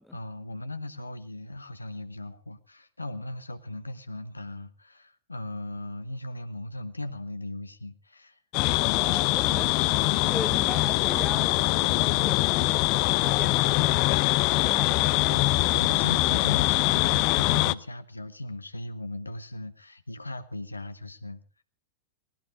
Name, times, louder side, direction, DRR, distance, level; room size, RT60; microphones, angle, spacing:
voice 1, 0.1-8.4 15.3-21.4, left 1 dB, 85° left, 1.5 m, -38 dB
sound 1, 8.5-17.7, left 21 dB, 40° left, 0.7 m, -23 dB
voice 2, 8.9-9.8 10.0-14.0 14.5-15.3, left 1 dB, ahead, 1.1 m, -39 dB
19.5 x 18.5 x 3.6 m
figure-of-eight pair, 95°, 0 cm